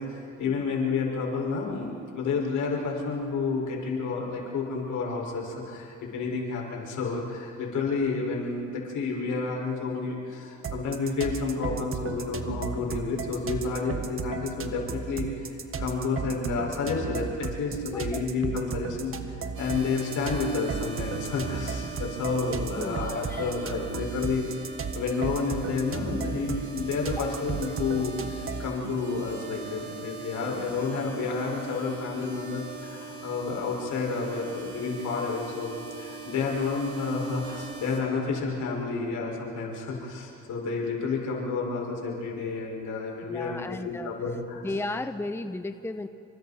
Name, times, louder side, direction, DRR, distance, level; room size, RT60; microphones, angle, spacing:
voice 1, 0.0-15.5 15.8-24.5 24.9-44.7, left 4 dB, 75° left, -1 dB, 5.4 m, -30 dB
sound 1, 10.6-28.8, right 6 dB, 45° right, 1.5 m, -35 dB
voice 2, 17.9-18.2 22.8-23.5 24.9-25.0 27.2-27.4 27.7-28.1 28.8-29.0 43.3-44.1 44.6-46.1, left 2 dB, 10° left, 9 dB, 0.8 m, -35 dB
sound 2, 19.5-38.0, right 4 dB, 70° right, 4.6 m, -42 dB
29.0 x 25.5 x 4.3 m, 2.8 s
cardioid pair, 90°, 30 cm